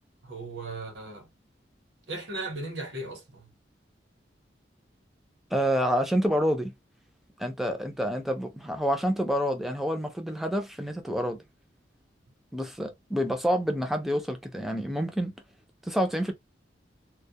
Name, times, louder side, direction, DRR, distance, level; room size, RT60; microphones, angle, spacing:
voice 1, 0.2-1.3 2.1-3.5, right 2 dB, 70° right, 1.0 m, -37 dB
voice 2, 5.5-6.7 7.4-11.4 12.5-15.3 15.8-16.3, equal, ahead, 0.4 m, -28 dB
2.2 x 2.1 x 2.7 m
head